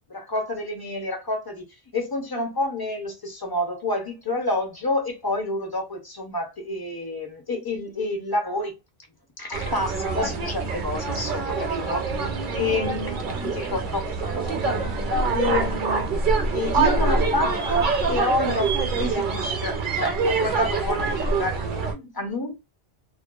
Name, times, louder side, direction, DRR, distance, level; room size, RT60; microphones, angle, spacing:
voice 1, 0.0-1.7 1.9-8.8 9.4-14.9 15.3-22.5, left 2 dB, 25° left, 0.6 m, -29 dB
sound 1, 9.5-21.9, right 4 dB, 55° right, 0.7 m, -25 dB
2.5 x 2.2 x 2.2 m
omnidirectional pair, 1.1 m